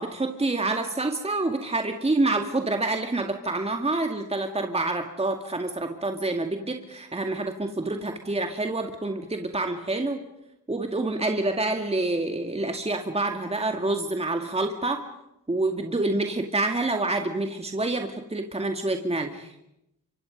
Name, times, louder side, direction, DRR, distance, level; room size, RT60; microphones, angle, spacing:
voice 1, 0.0-10.2 10.7-15.0 15.5-19.5, right 2 dB, 20° right, 4 dB, 2.2 m, -27 dB
28.0 x 25.0 x 5.3 m, 0.83 s
cardioid pair, 65°, 32 cm